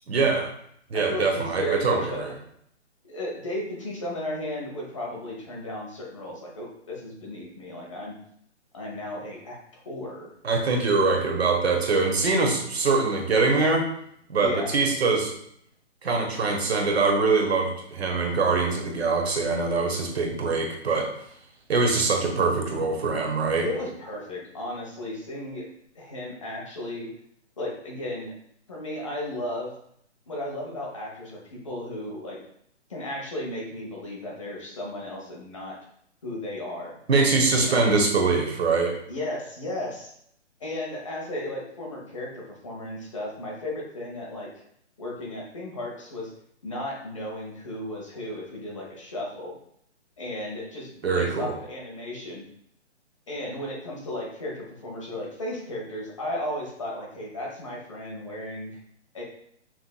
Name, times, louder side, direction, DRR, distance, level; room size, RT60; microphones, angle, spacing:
voice 1, 0.1-0.5 0.9-2.3 10.4-13.9 14.3-15.3 16.0-21.1 21.7-23.7 37.1-38.9 51.0-51.5, right 4 dB, 60° right, 2 dB, 1.2 m, -23 dB
voice 2, 0.9-2.4 3.1-8.2 8.7-9.6 9.8-10.3 14.4-14.8 23.6-25.7 25.9-27.1 27.6-28.3 28.7-29.7 30.3-32.4 32.9-35.7 36.2-36.9 37.5-37.8 39.1-40.1 40.6-44.5 45.0-46.3 46.6-49.5 50.2-52.4 53.3-58.8 59.1-59.2, left 1 dB, 25° left, -3 dB, 0.8 m, -34 dB
5.9 x 3.3 x 2.2 m, 0.69 s
hypercardioid pair, 175°, 36 cm